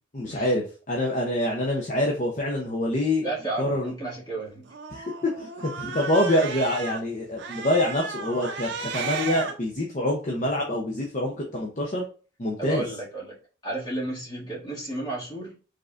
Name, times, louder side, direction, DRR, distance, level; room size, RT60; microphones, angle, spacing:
voice 1, 0.1-3.3 3.6-3.9 4.9-12.0 12.4-12.8, left 1 dB, 40° left, -1 dB, 0.7 m, -26 dB
voice 2, 3.2-4.7 12.6-13.4 13.6-15.5, right 2 dB, 20° left, -6 dB, 2.1 m, -32 dB
Cat, 4.7-7.0 7.4-9.5, right 5 dB, 65° right, 0.7 m, -34 dB
5.0 x 3.8 x 2.5 m, 0.37 s
head